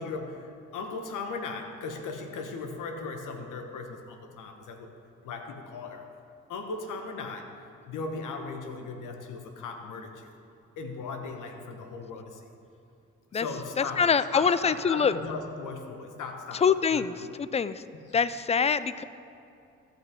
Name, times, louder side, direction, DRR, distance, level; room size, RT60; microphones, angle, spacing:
voice 1, 0.0-4.9 5.2-6.1 6.5-10.3 10.8-12.5 13.3-17.0 17.9-18.2, left 4 dB, 70° left, 5 dB, 1.1 m, -38 dB
voice 2, 13.8-15.1 16.6-17.8 18.1-19.0, left 6 dB, 20° left, 15 dB, 0.4 m, -25 dB
14.5 x 5.8 x 3.7 m, 2.6 s
hypercardioid pair, 50°, 32 cm